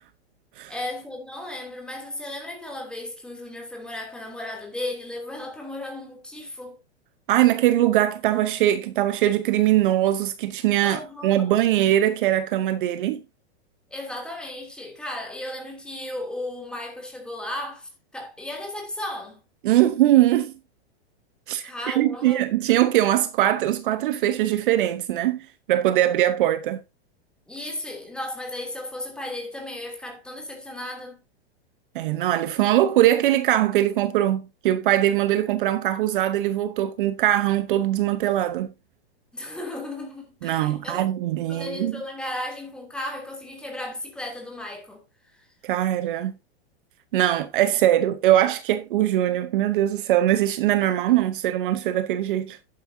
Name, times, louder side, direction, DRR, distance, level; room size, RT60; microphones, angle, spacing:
voice 1, 0.7-6.8 10.8-11.5 13.9-19.4 21.6-22.4 27.5-31.2 39.3-41.1 41.5-45.0 45.3-45.5, left 1 dB, 5° left, 2.9 m, -35 dB
voice 2, 7.3-13.2 19.6-20.5 21.5-25.4 25.7-26.8 31.9-38.7 40.4-42.0 45.6-46.3 47.1-52.6, right 13 dB, 50° right, 0.9 m, -21 dB
11.5 x 9.6 x 2.7 m
supercardioid pair, 155°, 33 cm